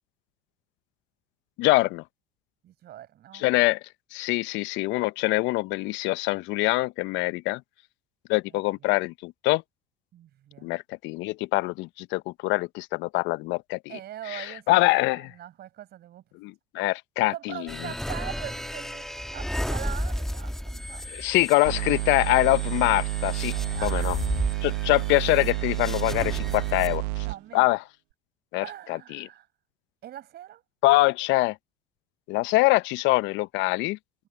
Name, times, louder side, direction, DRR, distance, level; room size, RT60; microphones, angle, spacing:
voice 1, 1.6-2.0 3.3-3.8 4.1-7.6 8.3-9.6 10.6-13.8 14.3-15.3 16.4-17.7 21.1-24.2 24.6-27.3 27.5-27.8 28.5-29.3 30.8-31.6 32.3-34.0, left 21 dB, 65° left, 1.0 m, -24 dB
voice 2, 2.6-3.5 8.8-8.9 10.1-10.7 13.9-16.2 17.3-19.1 19.3-21.1 23.5-24.2 27.2-27.7 28.6-29.5 30.0-30.6, right 12 dB, 55° right, 5.4 m, -42 dB
sound 1, 17.7-26.9, equal, ahead, 1.6 m, -34 dB
sound 2, 21.6-27.4, right 22 dB, 80° right, 1.1 m, -30 dB
hypercardioid pair, 75°, 20 cm